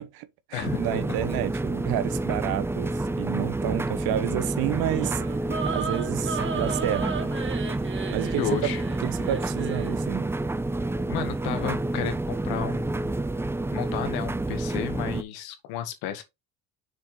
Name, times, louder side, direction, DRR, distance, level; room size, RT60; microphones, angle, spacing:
voice 1, 0.0-5.2 5.7-7.3 8.1-8.7 9.0-10.3, right 13 dB, 75° right, 1.0 m, -30 dB
voice 2, 0.5-1.0 8.4-8.8 11.1-13.2 13.7-16.2, left 11 dB, 85° left, 1.9 m, -33 dB
sound 1, 0.6-15.2, right 2 dB, 5° right, 0.4 m, -29 dB
sound 2, 4.7-10.0, right 6 dB, 35° right, 1.5 m, -35 dB
6.5 x 4.8 x 4.0 m
cardioid pair, 105°, 36 cm